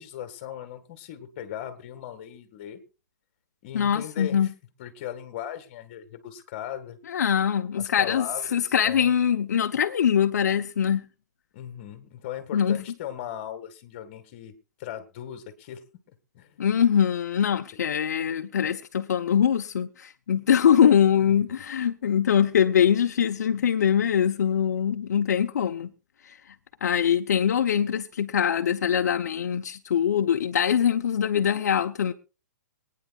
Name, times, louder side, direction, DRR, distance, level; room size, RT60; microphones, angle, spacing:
voice 1, 0.0-2.8 3.6-4.5 4.8-7.0 7.8-9.1 11.5-14.5 14.8-15.8 16.3-16.6 21.2-21.3, left 10 dB, 35° left, 1.9 m, -38 dB
voice 2, 3.7-4.5 7.1-8.3 8.5-11.0 12.5-12.8 16.6-25.9 26.3-26.4 26.8-32.1, left 8 dB, 70° left, 0.9 m, -23 dB
25.0 x 9.5 x 2.4 m
hypercardioid pair, 165°, 9 cm